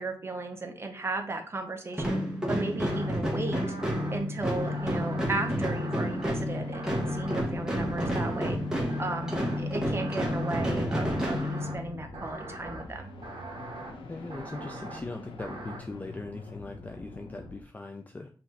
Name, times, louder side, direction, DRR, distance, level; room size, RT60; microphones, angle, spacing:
voice 1, 0.0-2.2 2.5-3.8 4.1-8.6 9.0-13.1, right 3 dB, 30° right, 4 dB, 0.8 m, -35 dB
sound 1, 1.9-12.1, equal, 5° right, 1.1 m, -30 dB
sound 2, 2.9-3.1 3.5-4.2 4.6-5.3 5.6-6.3 6.7-7.4 7.8-8.5 8.9-9.6 10.0-10.7 11.0-11.8 12.1-12.8 13.2-13.9 14.3-15.0 15.4-15.8, right 2 dB, 65° right, 1.0 m, -42 dB
sound 3, 4.4-17.6, left 3 dB, 75° left, 0.9 m, -44 dB
voice 2, 14.1-18.3, left 2 dB, 15° left, 4 dB, 0.3 m, -40 dB
5.7 x 2.6 x 3.2 m, 0.42 s
wide cardioid pair, 130°, 9 cm